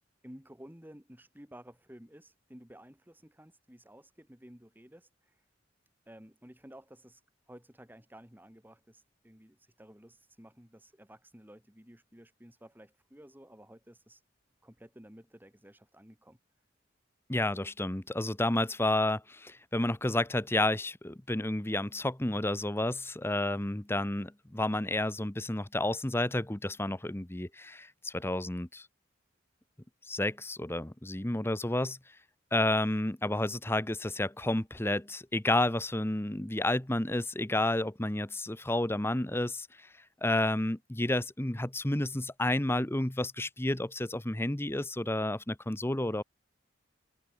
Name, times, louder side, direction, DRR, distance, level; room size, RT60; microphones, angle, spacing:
voice 1, 0.2-5.4 6.1-7.2 7.5-14.2 14.6-16.4, equal, 10° right, 3.1 m, -53 dB
voice 2, 17.3-28.9 30.1-32.0 32.5-39.7 40.2-46.2, left 1 dB, 15° left, 1.0 m, -31 dB
head